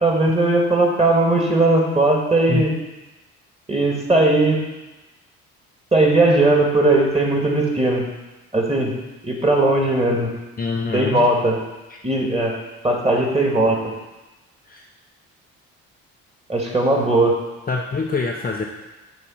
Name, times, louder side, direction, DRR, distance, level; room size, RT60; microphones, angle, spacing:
voice 1, 0.0-2.7 3.7-4.6 5.9-8.0 8.5-8.9 9.2-10.3 10.9-11.6 12.0-12.6 12.8-13.8 16.5-17.4, right 2 dB, 15° right, 0 dB, 2.0 m, -18 dB
voice 2, 10.6-11.3 11.9-12.0 14.7-14.8 17.7-18.6, left 4 dB, 25° left, 0 dB, 0.8 m, -25 dB
7.0 x 3.9 x 5.6 m, 1.1 s
hypercardioid pair, 55°, 38 cm